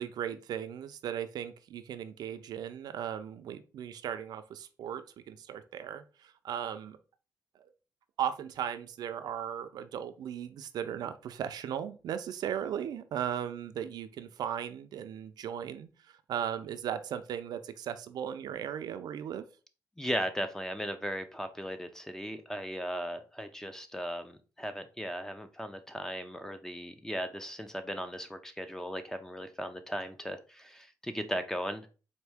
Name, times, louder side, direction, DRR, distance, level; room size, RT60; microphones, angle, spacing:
voice 1, 0.0-7.0 7.6-7.7 8.2-19.4, right 9 dB, 75° right, 10 dB, 0.4 m, -37 dB
voice 2, 20.0-31.9, equal, 5° left, 8 dB, 0.5 m, -37 dB
4.3 x 2.6 x 3.4 m, 0.34 s
cardioid pair, 100°, 7 cm